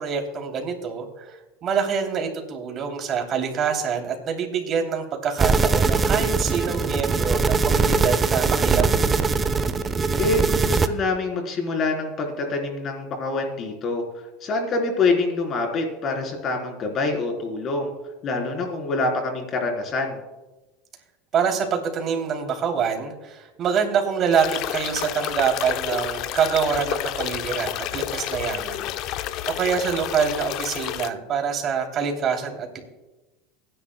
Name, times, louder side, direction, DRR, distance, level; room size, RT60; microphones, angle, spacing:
voice 1, 0.0-9.0 21.3-32.8, right 6 dB, 40° right, 3 dB, 2.8 m, -26 dB
sound 1, 5.4-10.9, right 4 dB, 25° right, 0.8 m, -21 dB
voice 2, 10.2-14.0 14.4-17.9 18.2-20.2, left 3 dB, 40° left, 2 dB, 3.6 m, -25 dB
sound 2, 24.3-31.1, left 13 dB, 55° left, 0.6 m, -30 dB
24.0 x 10.0 x 2.2 m, 1.1 s
supercardioid pair, 105°, 0 cm